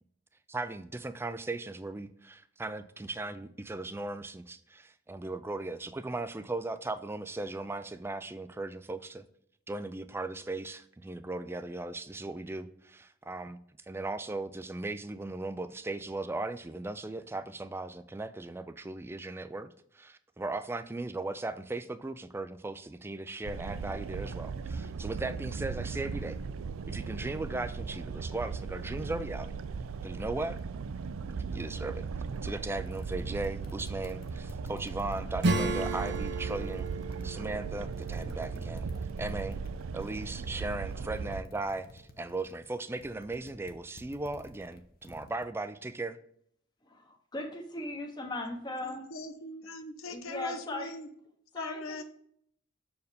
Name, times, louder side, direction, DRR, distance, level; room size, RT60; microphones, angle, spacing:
voice 1, 0.5-9.2 9.7-13.6 13.8-26.4 26.8-29.5 30.0-30.6 31.5-32.1 32.4-36.9 37.2-38.9 39.2-39.6 39.9-46.2, right 2 dB, 10° right, 12 dB, 0.3 m, -37 dB
sound 1, 23.4-41.4, right 5 dB, 85° right, 0.4 m, -37 dB
sound 2, 32.6-32.7 32.9-37.5 37.9-45.4, left 2 dB, 45° left, 0.7 m, -51 dB
Acoustic guitar / Strum, 35.4-39.7, right 2 dB, 55° right, 0.7 m, -34 dB
voice 2, 46.8-49.0 50.1-50.9 51.5-52.0, left 2 dB, 20° left, 3 dB, 0.9 m, -38 dB
voice 3, 48.8-51.1 51.5-52.0, left 2 dB, 85° left, 8 dB, 0.8 m, -41 dB
6.5 x 4.6 x 3.5 m, 0.68 s
head